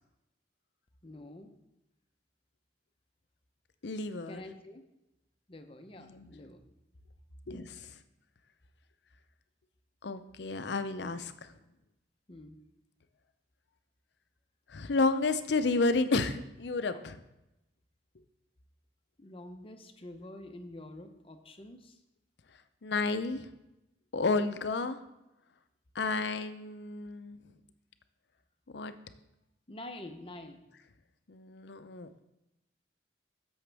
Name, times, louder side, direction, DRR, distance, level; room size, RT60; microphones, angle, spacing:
voice 1, 1.0-1.5 4.3-4.8 5.5-6.6 12.3-12.6 16.9-17.0 19.2-22.0 29.7-30.6, left 1 dB, 30° left, 6 dB, 0.8 m, -47 dB
voice 2, 3.8-4.4 6.0-6.3 7.5-7.9 10.0-11.5 14.7-17.2 22.8-23.5 24.1-25.0 25.9-27.4 28.7-28.9 31.3-32.1, left 3 dB, 70° left, 11 dB, 0.6 m, -31 dB
11.0 x 7.1 x 3.4 m, 0.91 s
head